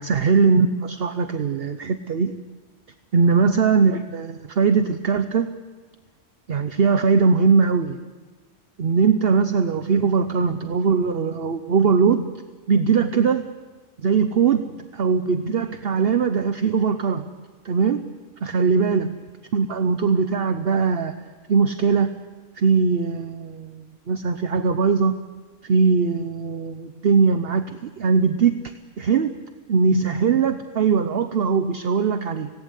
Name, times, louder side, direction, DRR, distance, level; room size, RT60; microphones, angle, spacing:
voice 1, 0.0-2.4 3.1-5.5 6.5-8.0 8.8-12.3 12.7-13.5 14.0-17.3 17.6-18.1 18.4-19.2 19.5-21.1 21.5-22.1 22.6-25.2 25.6-29.3 29.7-32.5, right 5 dB, 55° right, 9 dB, 1.0 m, -20 dB
26.0 x 18.0 x 8.2 m, 1.3 s
omnidirectional pair, 1.2 m